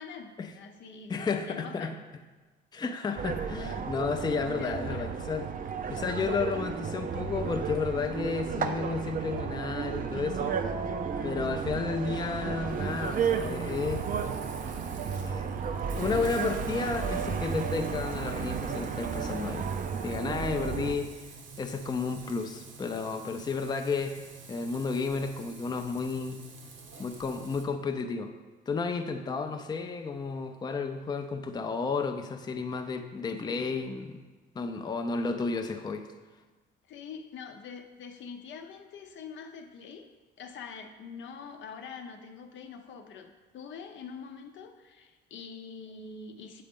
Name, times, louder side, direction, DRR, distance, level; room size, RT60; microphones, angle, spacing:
voice 1, 0.5-2.0 4.6-5.1 29.3-29.5 36.9-40.0 40.4-46.6, left 5 dB, 70° left, 5 dB, 0.6 m, -44 dB
voice 2, 1.1-1.9 2.7-5.5 5.9-10.6 11.2-14.0 15.1-15.5 15.9-19.7 20.0-21.1 21.6-24.2 24.5-26.4 27.0-28.3 28.7-34.2 34.6-36.1, left 4 dB, 20° left, 5 dB, 0.4 m, -32 dB
sound 1, 3.2-20.9, right 6 dB, 45° right, 0.4 m, -33 dB
Frying (food), 12.7-27.6, right 4 dB, 70° right, 0.9 m, -49 dB
7.6 x 3.9 x 3.6 m, 1.3 s
cardioid pair, 90°, 20 cm